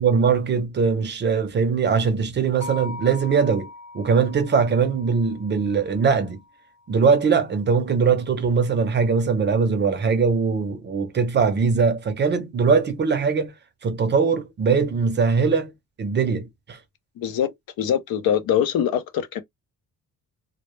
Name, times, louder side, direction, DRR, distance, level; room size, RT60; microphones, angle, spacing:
voice 1, 0.0-3.7 3.9-6.4 6.9-13.5 13.8-15.7 16.0-16.8, right 5 dB, 30° right, 0.4 m, -21 dB
sound 1, 2.6-6.8, left 2 dB, 50° left, 0.8 m, -41 dB
voice 2, 17.2-19.4, left 9 dB, 85° left, 0.6 m, -23 dB
2.0 x 2.0 x 3.0 m
cardioid pair, 175°, 35 cm